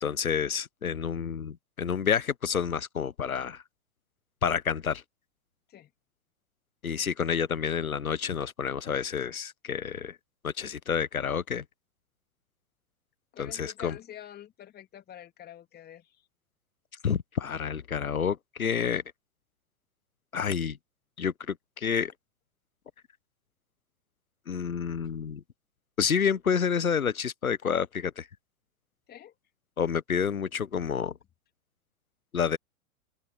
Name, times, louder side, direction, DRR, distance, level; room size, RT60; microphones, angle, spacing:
voice 1, 0.0-3.6 4.4-5.0 6.8-10.1 10.4-11.6 13.4-13.9 17.0-19.0 20.3-20.8 21.2-22.1 24.5-25.4 26.0-28.3 29.8-31.1 32.3-32.6, left 7 dB, 80° left, 1.2 m, -29 dB
voice 2, 13.3-16.3 29.1-29.3, left 11 dB, 20° left, 3.1 m, -47 dB
figure-of-eight pair, 100°, 42 cm